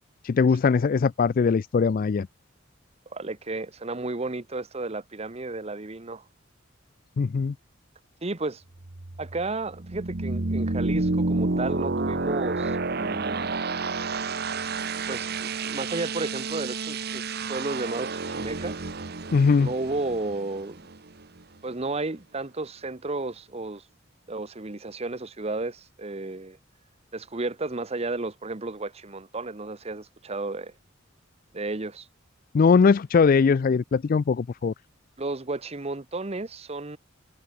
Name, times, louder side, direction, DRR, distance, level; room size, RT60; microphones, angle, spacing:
voice 1, 0.2-2.3 7.2-7.5 19.3-19.7 32.5-34.7, left 5 dB, 45° left, 0.3 m, -21 dB
voice 2, 3.1-6.2 8.2-8.6 9.2-13.6 15.1-18.9 19.6-20.8 21.6-23.8 24.3-26.6 27.1-30.7 31.5-32.1 35.2-37.0, right 2 dB, 30° right, 1.0 m, -33 dB
sound 1, 8.8-21.4, right 3 dB, 55° right, 1.2 m, -30 dB
head